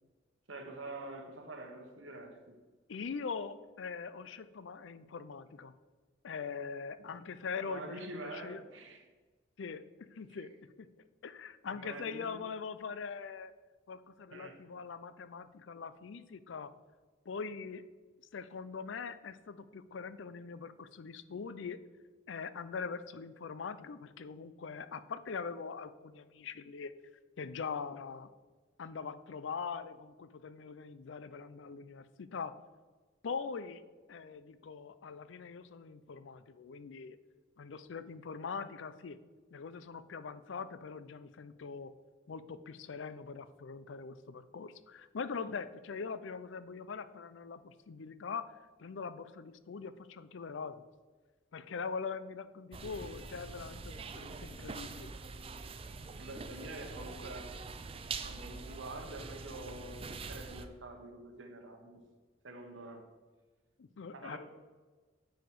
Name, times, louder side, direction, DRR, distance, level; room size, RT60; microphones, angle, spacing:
voice 1, 0.5-2.6 7.6-9.0 11.6-12.4 14.3-14.5 56.1-57.5 58.1-62.0 62.4-63.1 64.1-64.4, right 2 dB, 85° right, 4 dB, 1.2 m, -46 dB
voice 2, 2.9-5.7 6.2-8.6 9.6-9.8 10.1-10.5 10.8-10.9 11.2-13.5 13.9-16.7 17.3-17.8 18.3-21.8 22.3-26.9 27.4-28.3 28.8-32.5 33.2-33.8 34.1-37.2 37.6-39.2 39.5-41.9 42.3-48.5 48.8-50.8 51.5-55.1 63.8-64.4, left 5 dB, 75° left, 14 dB, 0.4 m, -42 dB
sound 1, 52.7-60.7, right 4 dB, 30° right, 0.4 m, -44 dB
9.2 x 4.9 x 4.7 m, 1.4 s
head